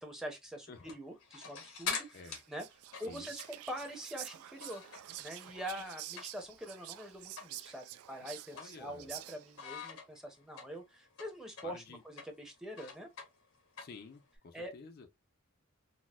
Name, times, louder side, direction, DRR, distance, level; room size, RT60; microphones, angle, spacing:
voice 1, 0.0-2.2 2.5-2.6 3.0-13.1 14.5-14.7, equal, 5° right, 0.6 m, -44 dB
sound 1, 0.7-5.2 5.5-6.7 7.0-7.1 7.4-7.6 7.9-9.2 9.6-14.4, left 6 dB, 85° left, 1.2 m, -44 dB
Whispering, 2.1-9.7, right 14 dB, 85° right, 0.3 m, -49 dB
voice 2, 8.5-9.1 11.6-12.0 13.8-15.1, left 4 dB, 45° left, 0.4 m, -51 dB
4.1 x 2.1 x 2.3 m
head